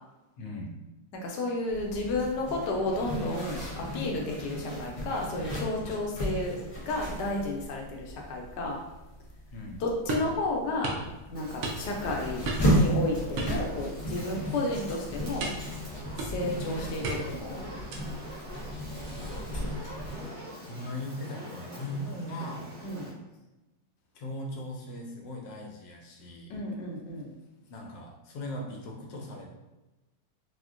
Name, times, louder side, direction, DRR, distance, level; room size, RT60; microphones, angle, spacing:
voice 1, 0.4-0.8 9.5-9.8 18.8-20.0 20.7-22.7 24.1-26.5 27.7-29.5, left 1 dB, 90° left, 1 dB, 1.3 m, -39 dB
voice 2, 1.2-6.6 6.9-8.8 9.8-10.9 11.3-12.4 12.7-15.5 16.2-17.6 22.8-23.1 26.5-27.3, left 2 dB, 75° left, 0 dB, 1.1 m, -32 dB
Zipper (clothing), 1.7-20.2, equal, 40° left, 0.8 m, -34 dB
sound 1, 10.1-10.4 10.8-11.1 11.6-12.1 12.4-12.8 13.4-14.1 14.4-14.7 15.4-15.7 16.2-16.6 17.0-17.4 17.9-18.2, right 3 dB, 70° right, 1.0 m, -34 dB
Fire, 11.3-23.1, equal, 45° right, 1.1 m, -44 dB
4.2 x 2.1 x 2.4 m, 1.1 s
omnidirectional pair, 1.9 m